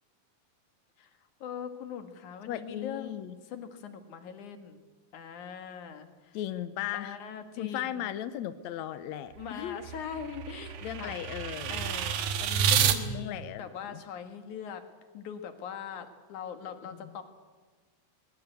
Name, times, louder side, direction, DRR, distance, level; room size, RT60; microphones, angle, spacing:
voice 1, 1.4-4.8 5.1-6.4 6.9-8.2 9.4-11.2 11.7-14.8 15.1-17.2, left 7 dB, 60° left, 8 dB, 2.9 m, -41 dB
voice 2, 2.5-3.3 6.3-7.2 7.6-9.8 10.8-11.8 13.1-14.0 17.0-17.1, left 12 dB, 75° left, 12 dB, 1.6 m, -37 dB
sound 1, 9.4-13.0, right 8 dB, 70° right, 2.8 m, -29 dB
20.5 x 20.0 x 8.2 m, 1.3 s
omnidirectional pair, 4.3 m